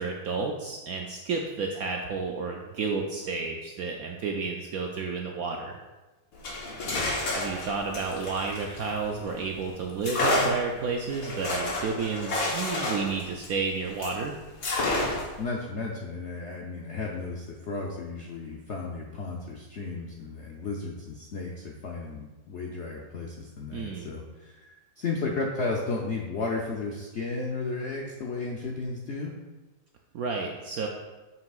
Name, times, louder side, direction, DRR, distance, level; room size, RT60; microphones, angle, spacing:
voice 1, 0.0-5.7 7.3-14.3 23.7-24.1 30.1-30.9, right 4 dB, 70° right, 1 dB, 0.8 m, -31 dB
sound 1, 6.3-9.4 10.0-14.2 14.6-15.4, left 2 dB, 55° left, 1.5 m, -30 dB
voice 2, 15.4-29.3, left 3 dB, 80° left, -1 dB, 0.6 m, -34 dB
7.6 x 5.8 x 2.4 m, 1.2 s
omnidirectional pair, 2.0 m